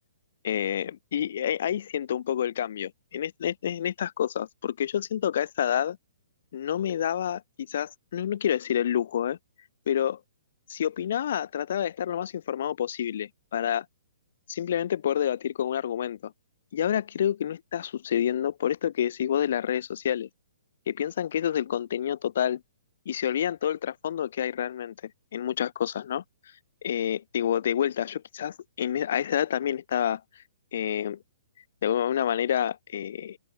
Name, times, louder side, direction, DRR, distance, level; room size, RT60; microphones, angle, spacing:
voice 1, 0.4-6.0 6.5-7.4 7.7-9.4 9.9-10.2 10.7-13.8 14.5-16.3 16.7-20.3 20.9-22.6 23.0-24.9 25.3-26.2 26.8-30.2 30.7-31.2 31.8-33.4, left 9 dB, 55° left, 1.6 m, -28 dB
open air
hypercardioid pair, 160°, 0 cm